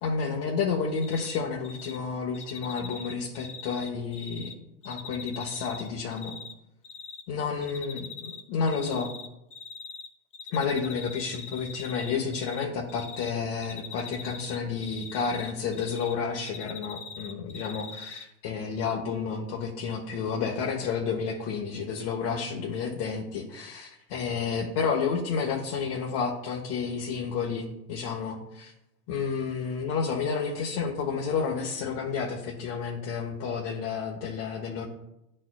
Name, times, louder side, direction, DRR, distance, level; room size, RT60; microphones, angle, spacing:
voice 1, 0.0-4.5 4.8-6.4 7.3-9.1 10.5-28.7 29.1-34.9, left 5 dB, 45° left, -2 dB, 1.2 m, -31 dB
Cricket, 1.0-1.4 1.6-2.0 2.3-4.5 4.8-6.5 6.8-7.2 7.6-8.4 8.7-10.1 10.3-12.6 12.9-13.3 13.6-16.1 16.4-18.2, left 5 dB, 15° left, 0.4 m, -41 dB
11.0 x 4.3 x 2.4 m, 0.87 s
hypercardioid pair, 105°, 48 cm